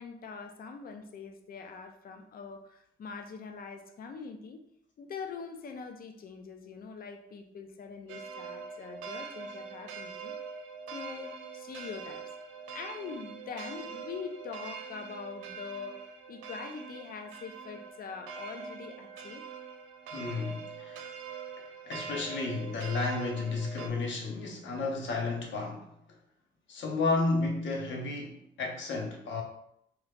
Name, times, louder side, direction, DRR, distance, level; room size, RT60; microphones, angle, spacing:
voice 1, 0.0-4.6 5.0-10.4 10.9-12.2 12.7-19.4, left 5 dB, 45° left, 5 dB, 0.5 m, -43 dB
sound 1, 8.1-23.9, right 5 dB, 85° right, 0.4 m, -43 dB
voice 2, 20.1-21.0 21.8-25.9 26.7-29.4, left 3 dB, 65° left, 0 dB, 0.9 m, -32 dB
3.0 x 2.3 x 3.4 m, 0.73 s
cardioid pair, 90°, 20 cm